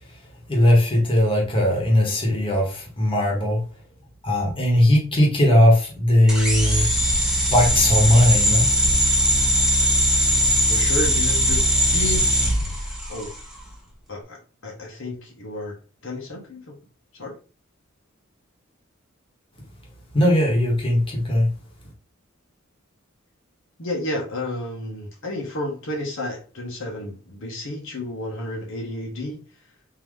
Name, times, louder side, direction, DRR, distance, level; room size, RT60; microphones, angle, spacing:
voice 1, 0.5-3.6 4.2-6.9 7.5-8.7 20.1-21.5, left 1 dB, 25° left, 1.2 m, -18 dB
sound 1, 6.3-13.4, equal, ahead, 1.0 m, -20 dB
voice 2, 10.7-12.5 13.1-13.3 14.1-15.8 16.0-16.8 17.1-17.4 23.8-29.4, left 1 dB, 65° left, 1.1 m, -31 dB
3.8 x 2.9 x 3.2 m
head